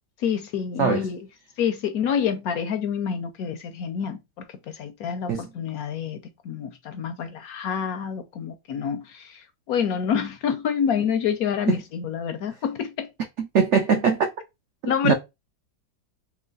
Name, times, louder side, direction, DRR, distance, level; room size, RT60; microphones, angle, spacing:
voice 1, 0.2-1.2 1.6-13.1 14.9-15.1, left 7 dB, 70° left, 1.0 m, -27 dB
voice 2, 13.4-14.3 14.8-15.1, right 6 dB, 75° right, 0.6 m, -21 dB
3.3 x 3.0 x 3.8 m
omnidirectional pair, 1.9 m